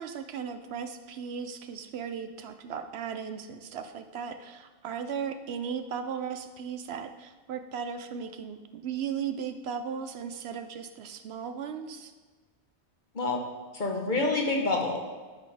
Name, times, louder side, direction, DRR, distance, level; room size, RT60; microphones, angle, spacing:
voice 1, 0.0-12.1, right 7 dB, 70° right, 8 dB, 0.8 m, -36 dB
voice 2, 13.7-15.0, left 2 dB, 45° left, 1 dB, 1.2 m, -27 dB
9.7 x 6.1 x 3.4 m, 1.4 s
omnidirectional pair, 1.2 m